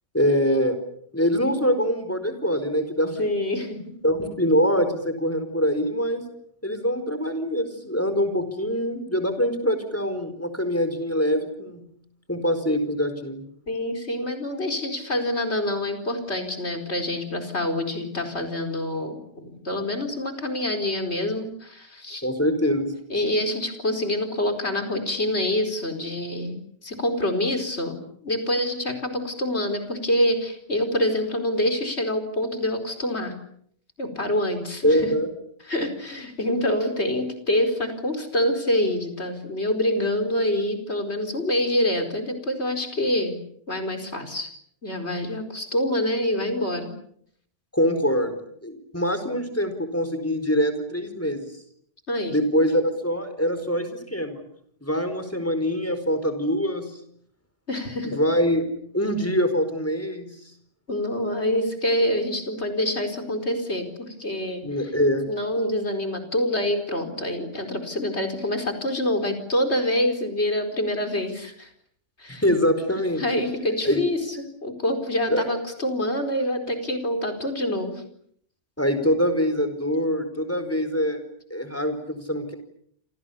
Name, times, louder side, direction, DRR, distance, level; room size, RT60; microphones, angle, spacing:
voice 1, 0.1-0.8 1.1-3.2 4.0-6.2 6.6-11.8 12.3-13.4 22.2-22.9 34.8-35.3 47.7-51.5 52.3-54.4 54.8-56.9 58.1-60.3 64.6-65.3 72.3-73.2 73.8-74.0 75.3-75.4 78.8-81.2 81.5-82.5, equal, 10° left, 9 dB, 4.7 m, -24 dB
voice 2, 3.2-3.8 13.7-22.3 23.1-26.6 26.8-28.0 28.2-33.3 34.0-35.0 35.6-43.4 43.7-44.5 44.8-46.9 52.1-52.4 57.7-58.2 60.9-64.9 65.3-71.7 72.2-72.4 73.2-78.0, left 1 dB, 60° left, 6 dB, 4.9 m, -26 dB
28.0 x 27.5 x 7.1 m, 0.67 s
omnidirectional pair, 1.2 m